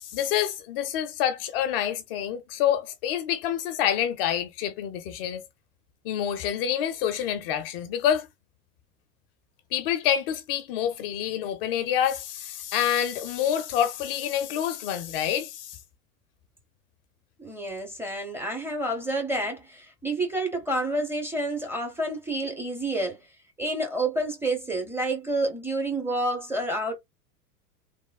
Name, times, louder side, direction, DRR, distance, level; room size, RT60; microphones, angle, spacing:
voice 1, 0.0-5.4 6.0-8.3 9.7-15.8, left 10 dB, 40° left, 0.5 m, -27 dB
voice 2, 17.4-23.2 23.6-26.9, right 1 dB, 5° right, 0.6 m, -29 dB
3.2 x 2.0 x 2.3 m
figure-of-eight pair, 95°, 46 cm